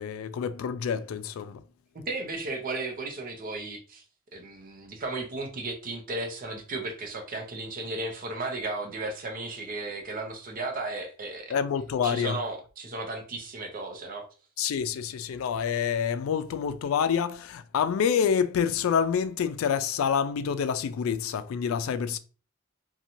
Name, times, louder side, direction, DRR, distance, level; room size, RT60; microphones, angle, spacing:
voice 1, 0.0-1.6 11.5-12.4 14.6-22.2, left 7 dB, 90° left, 0.3 m, -27 dB
voice 2, 1.9-4.0 4.3-11.6 12.0-14.3, right 2 dB, 45° right, 0.6 m, -35 dB
2.6 x 2.2 x 2.9 m
head